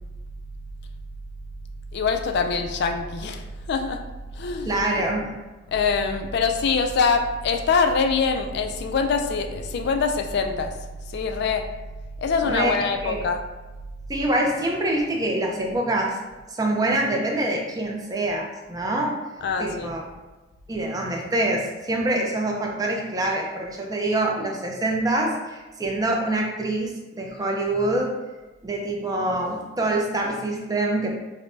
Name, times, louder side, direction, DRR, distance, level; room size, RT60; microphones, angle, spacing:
voice 1, 1.9-4.0 4.4-4.7 5.7-10.7 11.1-11.6 12.2-13.4 19.4-19.9, left 5 dB, 65° left, 6 dB, 0.3 m, -24 dB
voice 2, 4.6-5.3 12.4-13.2 14.1-16.2 16.5-19.2 19.6-20.0 20.7-28.1 28.6-31.1, right 1 dB, 20° right, 0 dB, 0.5 m, -25 dB
5.0 x 2.1 x 2.6 m, 1.1 s
head